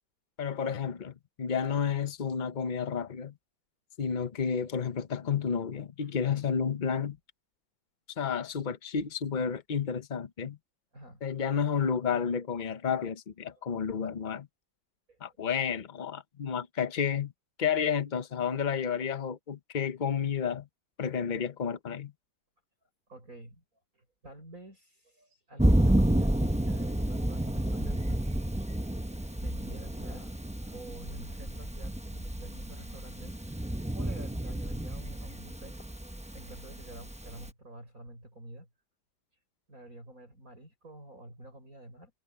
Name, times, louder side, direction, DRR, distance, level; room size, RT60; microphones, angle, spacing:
voice 1, 0.4-3.3 4.0-7.2 8.2-10.6 11.2-14.5 15.2-17.3 17.6-20.7 21.0-22.1, left 7 dB, 90° left, 0.4 m, -31 dB
voice 2, 23.1-23.6 23.9-28.3 29.4-33.6 33.9-35.8 36.3-38.7 39.7-42.1, right 1 dB, 45° right, 7.0 m, -49 dB
Thunder, 25.6-37.5, right 1 dB, 10° right, 0.3 m, -30 dB
omnidirectional pair, 2.1 m